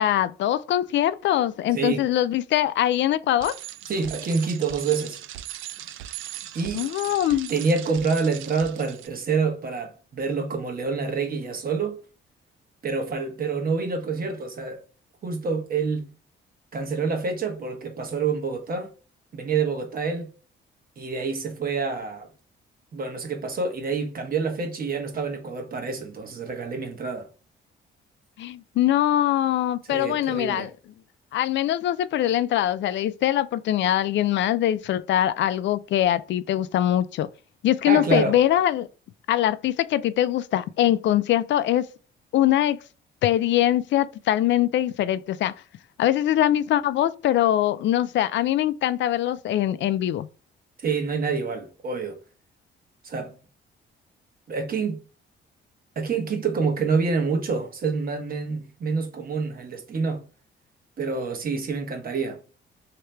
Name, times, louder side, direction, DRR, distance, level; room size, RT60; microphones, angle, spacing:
voice 1, 0.0-3.6 6.7-7.5 28.4-30.7 31.3-37.3 37.6-38.9 39.3-41.9 42.3-42.8 43.2-45.5 46.0-50.3, left 12 dB, 65° left, 0.4 m, -22 dB
voice 2, 1.7-2.1 3.9-5.2 6.5-6.9 7.3-12.0 12.8-14.8 15.2-16.1 16.7-18.9 19.3-20.3 21.0-22.3 22.9-27.3 29.9-30.7 37.9-38.4 50.8-52.2 53.0-53.4 54.5-55.0 56.0-60.2 61.0-62.4, right 4 dB, 45° right, 1.1 m, -27 dB
Bicycle, 3.4-9.1, right 13 dB, 80° right, 0.4 m, -39 dB
3.2 x 2.9 x 3.3 m
cardioid pair, 90°, 20 cm